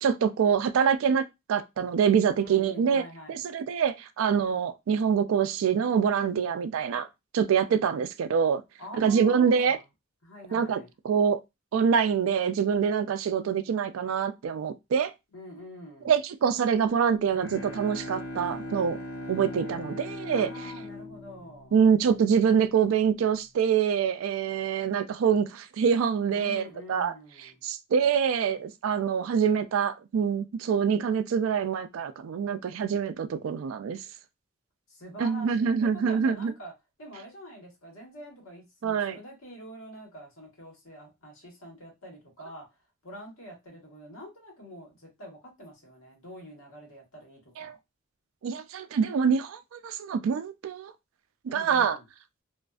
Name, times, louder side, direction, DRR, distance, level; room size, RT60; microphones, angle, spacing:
voice 1, 0.0-3.0 3.3-7.1 7.3-8.6 9.0-9.8 10.5-10.8 11.0-11.4 11.7-15.1 16.1-19.0 19.3-20.5 21.7-27.1 27.6-34.0 35.2-36.5 38.8-39.2 47.6-47.7 48.4-50.9 51.5-52.0, right 7 dB, 75° right, 0.3 m, -25 dB
voice 2, 2.3-3.4 8.8-9.8 10.2-10.9 15.3-16.1 20.3-21.8 26.3-27.6 34.9-36.7 37.0-42.7 43.0-47.8 51.5-52.1, equal, 85° left, 1.2 m, -45 dB
Bowed string instrument, 16.9-22.4, left 1 dB, 50° left, 0.8 m, -39 dB
2.5 x 2.4 x 2.3 m
head